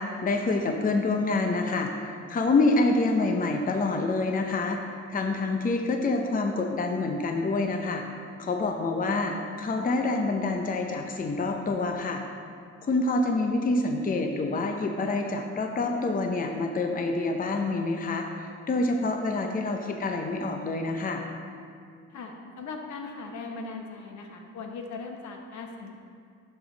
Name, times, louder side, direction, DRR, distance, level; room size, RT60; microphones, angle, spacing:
voice 1, 0.0-4.8 5.1-8.0 8.4-12.2 12.8-21.2, left 3 dB, 30° left, 3 dB, 0.7 m, -27 dB
voice 2, 22.1-25.9, left 4 dB, 70° left, 2 dB, 1.1 m, -39 dB
11.5 x 5.2 x 3.9 m, 2.3 s
cardioid pair, 90°, 30 cm